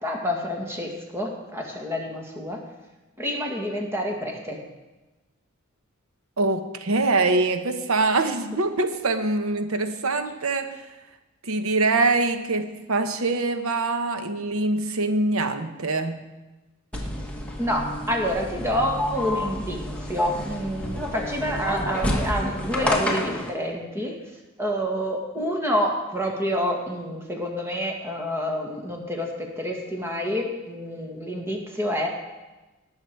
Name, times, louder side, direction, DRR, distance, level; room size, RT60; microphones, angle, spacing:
voice 1, 0.0-2.6 3.2-4.6 17.6-24.2 24.6-32.1, equal, 10° right, 0 dB, 1.7 m, -28 dB
voice 2, 6.4-10.8 11.4-16.3, right 3 dB, 85° right, 8 dB, 0.9 m, -24 dB
sound 1, 16.9-23.5, left 1 dB, 5° left, 1.4 m, -29 dB
18.0 x 6.8 x 4.6 m, 1.1 s
head